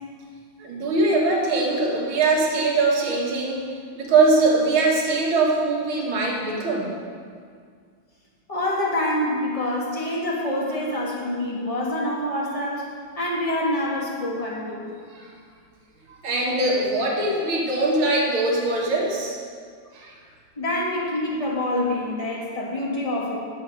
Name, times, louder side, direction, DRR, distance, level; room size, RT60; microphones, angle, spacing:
voice 1, 0.6-3.7 4.0-6.9 15.1-15.3 16.1-19.4 19.9-20.1, right 3 dB, 80° right, -2 dB, 2.4 m, -22 dB
voice 2, 8.5-12.9 13.2-14.9 17.4-17.5 20.6-23.4, left 1 dB, 15° left, -4 dB, 1.8 m, -26 dB
11.0 x 7.4 x 5.4 m, 2.1 s
omnidirectional pair, 2.2 m